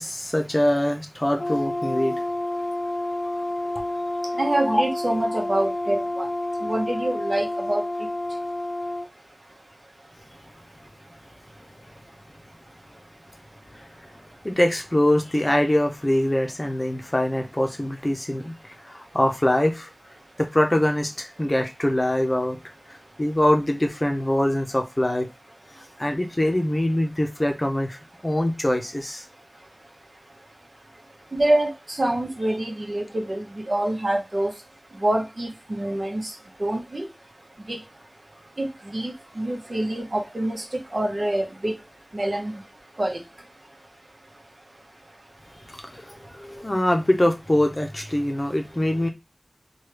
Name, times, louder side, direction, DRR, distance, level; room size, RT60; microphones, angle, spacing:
voice 1, 0.0-2.1 4.7-4.8 14.4-19.9 20.4-22.6 23.2-25.3 26.0-29.2 45.7-49.1, left 1 dB, 35° left, 0.6 m, -23 dB
Brass instrument, 1.4-9.1, left 1 dB, 85° left, 0.5 m, -29 dB
voice 2, 4.4-6.3 6.6-7.8 31.3-34.5 35.0-36.3 36.6-37.0 37.7-37.8 38.6-40.6 40.9-41.8 42.1-42.5 43.0-43.2, right 1 dB, 65° right, 0.8 m, -26 dB
3.1 x 2.3 x 3.2 m
wide cardioid pair, 45°, 0 cm